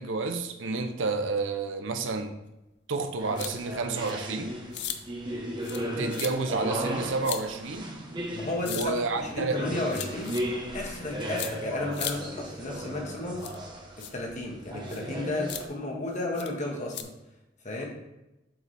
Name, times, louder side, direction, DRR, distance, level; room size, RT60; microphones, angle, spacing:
voice 1, 0.0-2.4 2.9-4.5 6.0-7.9 8.6-9.6, right 3 dB, 75° right, 7 dB, 0.6 m, -30 dB
sound 1, 3.2-15.7, equal, 25° right, 1.0 m, -36 dB
sound 2, 3.4-3.5 4.1-4.2 4.7-5.0 5.6-5.9 6.1-6.3 7.2-7.4 8.6-8.9 9.9-10.4 11.4-11.5 11.9-12.1 13.4-13.6 14.0-14.1 14.9-15.0 15.5-15.6 16.4-16.5 16.9-17.0, left 10 dB, 60° left, 0.6 m, -36 dB
voice 2, 8.3-13.4 14.1-17.1 17.6-17.8, left 2 dB, 40° left, -1 dB, 1.5 m, -33 dB
7.5 x 4.8 x 3.3 m, 0.95 s
head